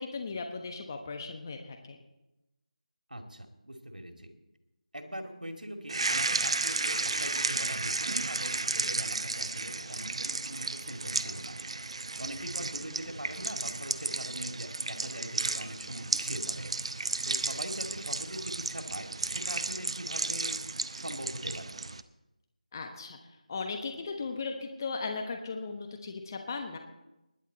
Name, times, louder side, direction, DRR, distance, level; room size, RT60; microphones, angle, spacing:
voice 1, 0.0-2.0 22.7-23.2 23.5-26.8, left 4 dB, 25° left, 5 dB, 1.1 m, -37 dB
voice 2, 3.1-4.3 4.9-11.6 12.2-16.7 17.2-20.6 20.9-21.7, equal, 90° right, 5 dB, 2.4 m, -41 dB
sound 1, 5.9-22.0, right 3 dB, 45° right, 0.7 m, -33 dB
20.5 x 10.0 x 4.1 m, 0.94 s
figure-of-eight pair, 165°, 4 cm